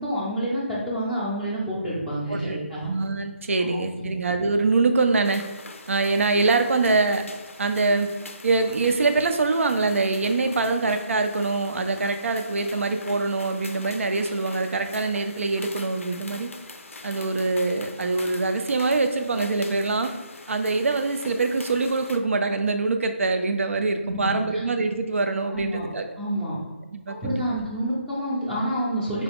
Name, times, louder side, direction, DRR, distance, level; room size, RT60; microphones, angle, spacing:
voice 1, 0.0-3.0 3.7-4.1 24.1-24.6 25.5-25.9 26.2-26.6 27.1-29.2, right 1 dB, 5° right, -8 dB, 0.5 m, -28 dB
voice 2, 2.9-5.4 5.9-7.2 7.6-8.1 8.4-16.5 17.0-20.1 20.5-26.1 26.9-27.7, right 3 dB, 70° right, 7 dB, 0.4 m, -24 dB
sound 1, 5.2-22.2, left 3 dB, 80° left, 0.4 m, -43 dB
3.9 x 2.2 x 3.4 m, 1.3 s
figure-of-eight pair, 160°, 7 cm